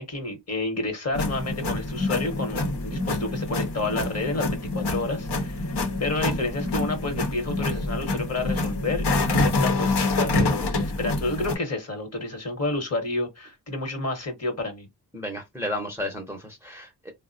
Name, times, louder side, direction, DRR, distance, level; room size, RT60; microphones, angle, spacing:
voice 1, 0.0-14.9, left 2 dB, 40° left, 1.1 m, -30 dB
sound 1, 1.1-11.6, left 2 dB, 75° left, 0.9 m, -26 dB
voice 2, 15.1-17.1, left 1 dB, 5° right, 0.6 m, -33 dB
3.7 x 2.1 x 2.5 m
wide cardioid pair, 115°, 41 cm